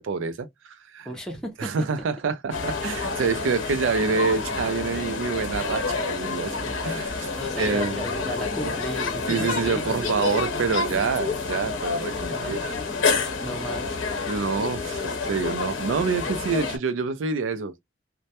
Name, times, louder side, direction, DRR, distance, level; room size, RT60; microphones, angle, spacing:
voice 1, 0.0-1.1 1.6-7.3 7.6-8.1 8.6-8.7 9.3-12.8 14.3-17.8, right 5 dB, 80° right, 0.4 m, -27 dB
voice 2, 1.1-1.9 7.4-9.9 12.2-12.6 13.4-14.1, equal, 5° left, 0.4 m, -35 dB
sound 1, 2.5-16.8, left 4 dB, 90° left, 0.8 m, -28 dB
2.1 x 2.1 x 2.7 m
head